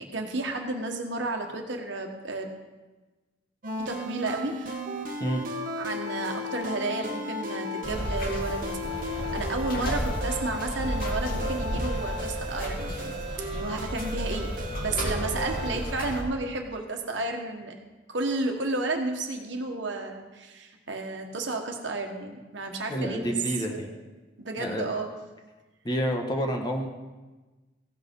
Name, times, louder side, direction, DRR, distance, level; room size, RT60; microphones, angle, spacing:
voice 1, 0.0-2.5 3.8-4.8 5.8-13.1 13.5-14.5 14.8-17.7 18.1-23.3 23.7-23.8 24.4-25.1, right 2 dB, 65° right, 3 dB, 1.4 m, -32 dB
sound 1, 3.6-15.8, equal, 45° right, 1.1 m, -35 dB
sound 2, 7.8-16.2, equal, 50° left, 2.1 m, -32 dB
voice 2, 22.9-23.9 24.6-24.9 25.8-26.9, equal, 20° left, 3 dB, 1.1 m, -29 dB
15.5 x 6.2 x 5.4 m, 1.2 s
head